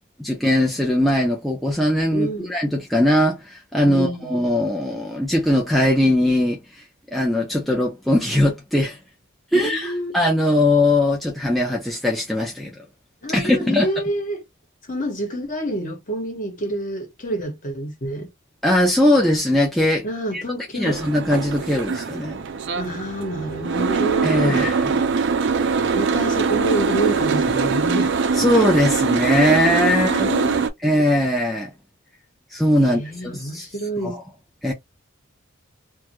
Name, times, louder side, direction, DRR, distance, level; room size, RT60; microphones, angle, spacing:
voice 1, 0.2-9.0 9.5-12.7 13.3-13.9 18.6-20.1 20.3-20.4 20.7-22.4 24.2-24.9 28.4-30.3 30.8-31.7 32.5-33.7 34.0-34.2 34.6-34.7, left 1 dB, ahead, 0.5 m, -20 dB
voice 2, 2.1-2.5 3.8-4.3 9.6-10.1 13.2-14.4 14.9-18.3 20.0-21.0 22.8-24.7 25.9-28.1 32.8-34.2, right 1 dB, 40° left, 1.1 m, -28 dB
Boat Water vehicle, 20.9-30.7, right 5 dB, 60° right, 0.5 m, -22 dB
2.5 x 2.4 x 3.0 m
head